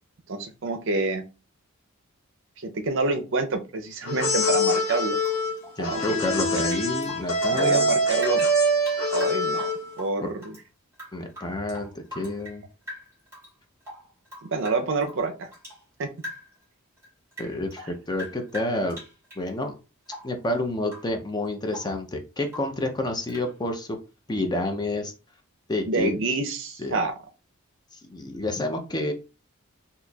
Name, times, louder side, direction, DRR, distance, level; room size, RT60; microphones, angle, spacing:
voice 1, 0.3-1.2 2.6-5.2 5.8-6.2 6.5-6.7 7.5-8.5 9.1-9.7 10.0-10.6 14.4-15.5 16.0-16.1 25.9-27.1, right 3 dB, 60° right, 6 dB, 0.5 m, -27 dB
sound 1, 4.0-9.9, equal, 70° left, 1.4 m, -24 dB
Rain / Drip, 5.2-7.9 8.2-10.6 10.9-12.6 12.9-13.5 13.8-15.8 16.2-16.6 17.0-19.5 20.1-20.4 20.8-21.2 21.4-22.0 22.5-22.8 23.3-23.5, left 1 dB, 10° right, 1.9 m, -42 dB
voice 2, 5.8-7.9 10.2-10.3 11.1-12.7 17.4-19.0 19.4-19.7 20.2-24.0 24.3-25.1 25.7-26.1 26.8-27.0 28.1-29.1, left 1 dB, 20° left, 5 dB, 0.5 m, -29 dB
4.0 x 2.8 x 2.3 m, 0.31 s
head